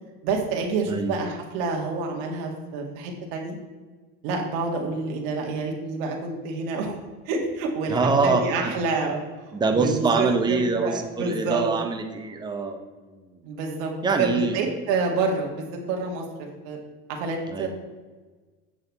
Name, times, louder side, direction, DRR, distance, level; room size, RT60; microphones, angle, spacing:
voice 1, 0.2-3.6 4.2-7.0 7.3-9.2 9.5-11.7 13.4-13.9 14.2-16.8 17.1-17.7, right 3 dB, 80° right, 1 dB, 1.8 m, -28 dB
voice 2, 7.9-8.8 9.5-13.4 14.0-14.6 17.5-17.7, right 4 dB, 15° right, 5 dB, 0.8 m, -25 dB
8.0 x 6.7 x 4.0 m, 1.3 s
cardioid pair, 150°, 29 cm